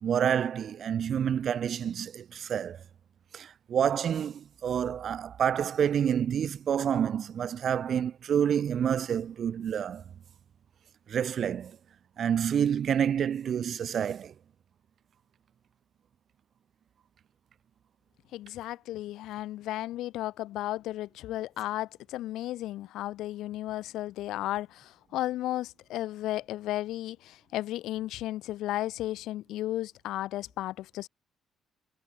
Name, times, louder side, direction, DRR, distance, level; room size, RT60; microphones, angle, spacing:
voice 1, 0.0-2.8 3.3-10.0 11.1-11.8 12.2-14.3, right 8 dB, 45° right, 2.7 m, -28 dB
voice 2, 18.3-31.1, left 15 dB, 85° left, 1.5 m, -34 dB
cardioid pair, 145°, 0 cm